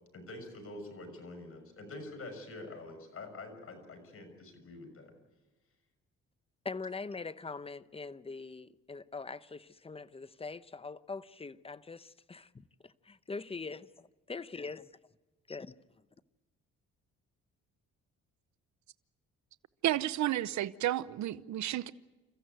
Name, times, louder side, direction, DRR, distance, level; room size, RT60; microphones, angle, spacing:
voice 1, 0.1-5.1, left 2 dB, 45° left, 6.4 m, -46 dB
voice 2, 6.6-14.9 15.5-16.0, left 4 dB, 20° left, 0.8 m, -43 dB
voice 3, 19.8-21.9, right 13 dB, 70° right, 0.8 m, -31 dB
28.5 x 14.5 x 9.2 m
cardioid pair, 90°, 30 cm